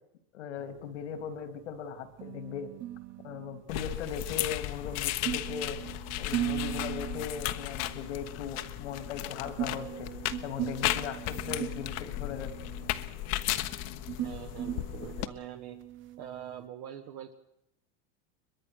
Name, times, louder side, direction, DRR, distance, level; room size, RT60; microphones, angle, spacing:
voice 1, 0.3-2.7 3.2-5.8 6.2-10.1 10.4-12.5, left 7 dB, 85° left, 9 dB, 2.9 m, -38 dB
sound 1, 0.6-16.7, right 12 dB, 35° right, 0.7 m, -40 dB
sound 2, 3.7-15.3, left 15 dB, 50° left, 1.2 m, -35 dB
voice 2, 14.2-15.8 16.2-17.3, right 10 dB, 50° right, 5 dB, 1.7 m, -44 dB
22.5 x 22.0 x 6.4 m, 0.81 s
supercardioid pair, 130°, 34 cm